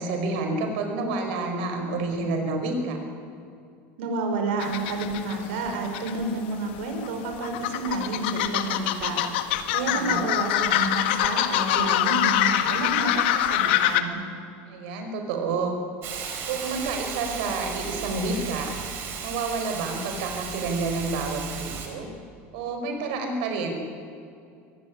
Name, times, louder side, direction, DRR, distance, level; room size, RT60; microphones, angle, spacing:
voice 1, 0.0-3.0 9.9-10.2 14.7-15.8 16.5-18.7 19.2-22.1 22.5-23.7, right 3 dB, 60° right, 5 dB, 5.2 m, -29 dB
voice 2, 4.0-9.2 9.7-14.2, right 3 dB, 80° right, 4 dB, 5.8 m, -30 dB
sound 1, 4.6-6.2 6.5-14.0, left 12 dB, 70° left, 1.6 m, -25 dB
Hiss, 16.0-21.9, right 6 dB, 40° right, 4.1 m, -35 dB
24.0 x 17.5 x 9.9 m, 2.4 s
cardioid pair, 180°, 6 cm